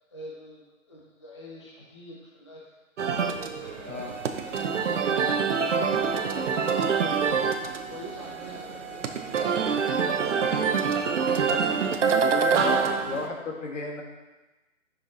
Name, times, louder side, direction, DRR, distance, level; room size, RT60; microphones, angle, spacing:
voice 1, 0.1-2.8 3.2-4.1 4.4-6.7 7.1-10.6 11.1-12.1, equal, 20° left, -5 dB, 0.6 m, -45 dB
sound 1, 3.0-13.3, right 5 dB, 60° right, 0.7 m, -26 dB
sound 2, 3.6-10.0, equal, 15° right, 1.3 m, -50 dB
sound 3, 3.9-12.9, right 6 dB, 80° right, 1.2 m, -43 dB
voice 2, 10.3-10.8 11.4-11.9 12.4-14.0, left 3 dB, 60° left, 1 dB, 1.6 m, -35 dB
9.2 x 5.7 x 2.7 m, 1.1 s
hypercardioid pair, 165°, 41 cm